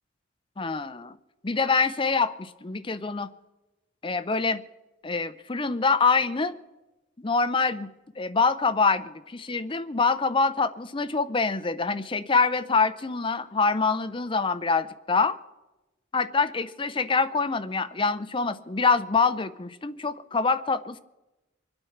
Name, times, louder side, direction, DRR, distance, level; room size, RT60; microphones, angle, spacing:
voice 1, 0.6-1.2 1.4-3.3 4.0-4.6 5.0-6.6 7.2-7.9 8.2-15.4 16.1-21.0, left 4 dB, 25° left, 12 dB, 0.6 m, -25 dB
24.5 x 8.8 x 5.9 m, 1.1 s
head